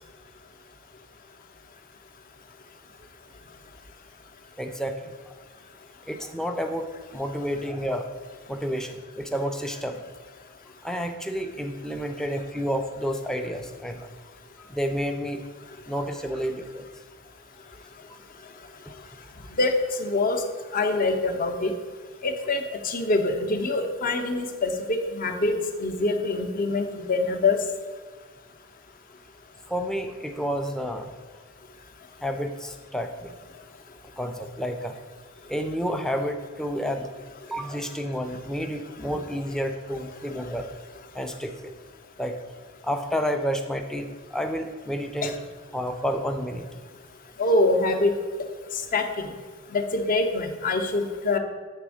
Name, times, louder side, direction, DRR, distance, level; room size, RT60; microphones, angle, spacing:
voice 1, 4.6-5.3 6.1-8.1 8.5-10.0 10.8-14.1 14.6-15.4 15.9-16.9 29.7-31.1 32.2-33.4 34.2-35.0 35.5-37.1 37.5-40.7 41.1-41.7 42.2-42.4 42.8-45.3 45.7-46.6, equal, 5° left, 4 dB, 0.5 m, -30 dB
voice 2, 20.0-20.4 20.7-21.7 22.2-27.6 45.2-45.3 47.4-48.1 48.9-49.3 49.7-51.4, left 2 dB, 40° left, 4 dB, 0.7 m, -25 dB
8.2 x 3.4 x 6.3 m, 1.5 s
head